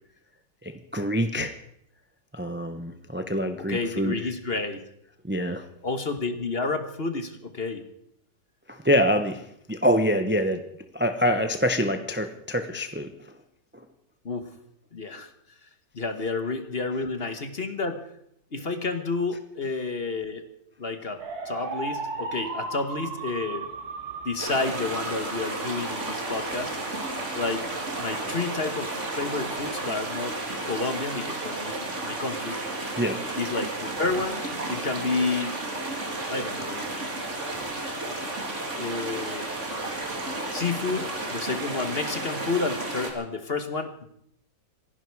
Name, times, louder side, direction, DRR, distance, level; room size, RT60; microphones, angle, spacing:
voice 1, 0.6-1.5 2.3-4.2 5.2-5.7 8.7-10.7 10.9-13.1 13.7-13.8 33.0-33.2, equal, 10° right, 7 dB, 0.5 m, -25 dB
voice 2, 3.7-4.8 5.8-7.9 14.2-14.5 14.9-15.3 15.9-18.1 18.5-20.4 20.8-21.2 21.4-23.7 24.2-26.9 27.3-27.7 28.0-30.4 30.6-31.8 32.0-32.6 33.4-34.4 34.7-35.6 36.3-36.9 38.8-39.5 40.5-44.0, left 3 dB, 35° left, 8 dB, 1.4 m, -30 dB
sound 1, 21.2-30.5, right 3 dB, 55° right, 2.6 m, -38 dB
sound 2, 24.4-43.1, right 2 dB, 40° right, 2.8 m, -32 dB
26.5 x 11.0 x 4.8 m, 0.74 s
omnidirectional pair, 2.0 m